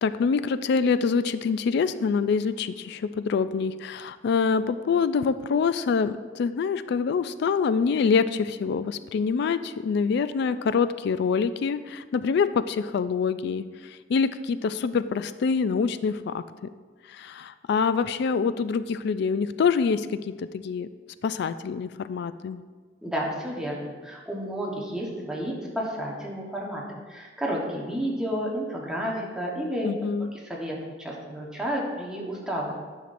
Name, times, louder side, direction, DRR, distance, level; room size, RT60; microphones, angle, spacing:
voice 1, 0.0-16.7 17.1-20.9 21.2-22.6 29.8-30.3, left 5 dB, 65° left, 13 dB, 0.3 m, -25 dB
voice 2, 23.0-29.9 30.3-32.7, equal, 5° right, -3 dB, 1.1 m, -31 dB
10.0 x 5.9 x 2.6 m, 1.4 s
head